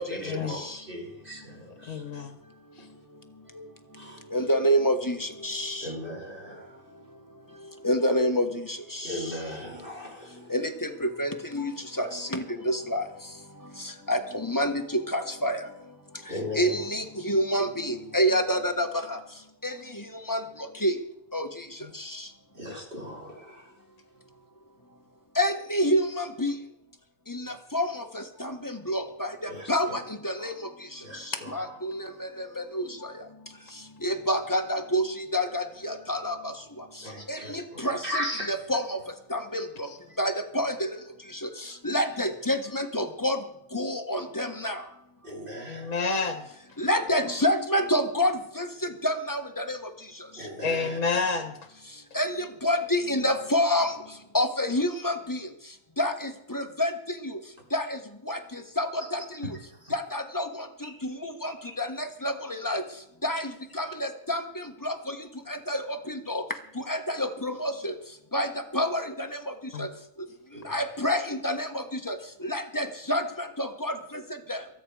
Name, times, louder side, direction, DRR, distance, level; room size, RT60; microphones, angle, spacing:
voice 1, 0.0-2.0 3.9-4.2 5.8-6.8 9.0-10.5 16.3-16.8 22.5-23.7 29.5-30.0 30.4-30.5 31.0-31.8 37.0-38.5 45.2-46.0 50.4-51.0 59.0-59.1 59.7-59.9 60.8-60.9 61.4-61.8 62.7-62.8 70.5-70.8, left 1 dB, 35° right, -1 dB, 3.7 m, -38 dB
voice 2, 1.9-2.4 21.8-21.9 45.7-46.5 50.6-51.6 69.7-69.9, left 4 dB, 55° left, 7 dB, 1.6 m, -29 dB
voice 3, 4.3-5.9 7.8-9.2 10.5-11.7 12.0-13.0 14.1-15.6 16.5-19.2 19.6-19.8 20.3-20.4 20.8-20.9 21.3-21.5 22.0-22.2 25.4-26.5 27.3-30.5 31.5-32.9 34.0-36.5 37.3-39.0 39.3-39.9 40.2-40.9 41.4-41.5 41.8-43.4 43.7-44.8 46.8-49.8 52.1-53.9 54.3-55.4 56.0-56.9 57.2-57.4 57.7-58.0 58.3-58.4 58.8-59.5 59.9-60.6 61.0-61.5 61.8-62.8 63.2-65.2 65.5-66.4 66.8-67.9 68.3-68.5 68.7-69.4 69.8-69.9 70.6-72.1 72.4-74.2 74.5-74.6, equal, 15° left, 6 dB, 1.2 m, -28 dB
23.0 x 9.2 x 4.9 m, 0.79 s
omnidirectional pair, 1.6 m